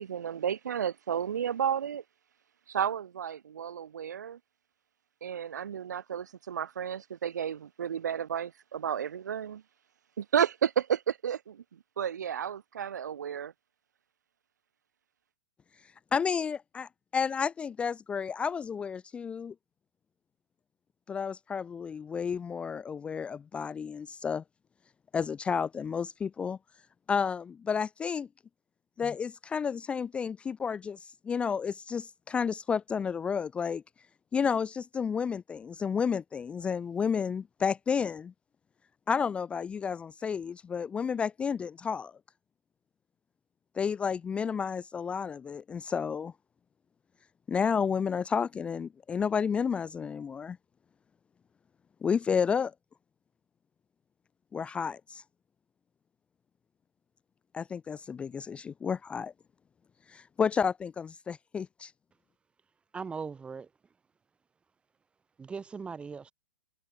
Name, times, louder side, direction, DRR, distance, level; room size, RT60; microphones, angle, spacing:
voice 1, 0.0-2.0 2.7-4.4 5.2-9.6 10.2-13.5, right 8 dB, 80° right, 3.4 m, -32 dB
voice 2, 16.1-19.5 21.1-24.4 25.1-26.6 27.1-28.3 29.0-31.0 31.2-33.8 34.3-38.3 39.1-42.1 43.8-46.3 47.5-50.6 52.0-52.7 54.5-55.2 57.5-59.3 60.1-61.9, left 6 dB, 10° left, 0.4 m, -31 dB
voice 3, 62.9-63.7 65.4-66.3, right 5 dB, 10° right, 2.3 m, -39 dB
hypercardioid pair, 140°, 9 cm